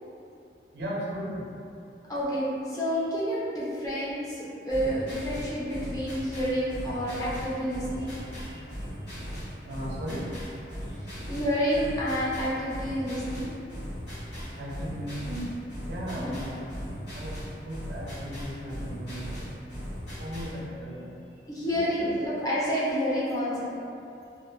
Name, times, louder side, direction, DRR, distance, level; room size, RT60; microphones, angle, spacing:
voice 1, 0.7-1.4 8.3-10.3 10.8-11.0 14.5-15.5 15.8-16.7 17.1-19.5 20.2-21.2 22.0-22.1, equal, 65° right, -5 dB, 0.5 m, -37 dB
voice 2, 2.1-8.1 11.0-13.5 16.1-16.3 21.5-23.7, equal, 20° left, -8 dB, 0.4 m, -29 dB
sound 1, 4.7-20.6, equal, 85° left, 1.3 m, -38 dB
2.5 x 2.1 x 2.5 m, 2.6 s
head